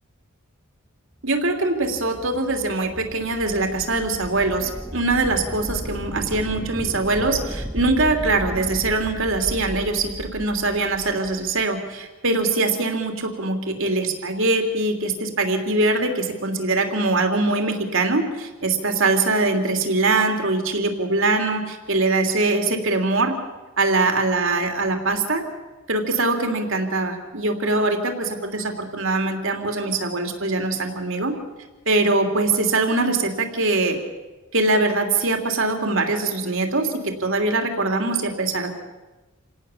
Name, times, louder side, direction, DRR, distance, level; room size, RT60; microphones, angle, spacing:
voice 1, 1.2-23.3 23.8-25.4 25.9-31.4 31.9-34.0 34.5-38.7, right 2 dB, 65° right, 4 dB, 3.1 m, -22 dB
sound 1, 1.5-11.6, equal, 5° right, 0.8 m, -35 dB
27.5 x 18.0 x 7.3 m, 1.2 s
head